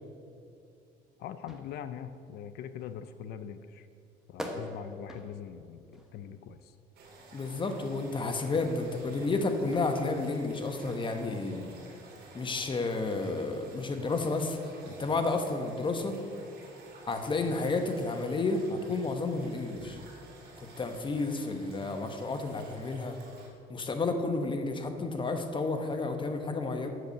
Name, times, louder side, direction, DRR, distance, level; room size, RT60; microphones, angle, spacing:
sound 1, 1.1-20.4, equal, 5° right, 1.1 m, -51 dB
voice 1, 1.2-3.9 4.3-6.7, left 8 dB, 75° left, 11 dB, 0.5 m, -42 dB
sound 2, 7.0-23.5, right 2 dB, 65° right, 2.5 m, -52 dB
voice 2, 7.3-11.8 12.3-14.6 14.8-16.2 17.1-20.0 20.8-23.2 23.7-26.9, left 3 dB, 30° left, 6 dB, 0.9 m, -31 dB
7.9 x 6.7 x 6.8 m, 2.4 s
cardioid pair, 110°, 17 cm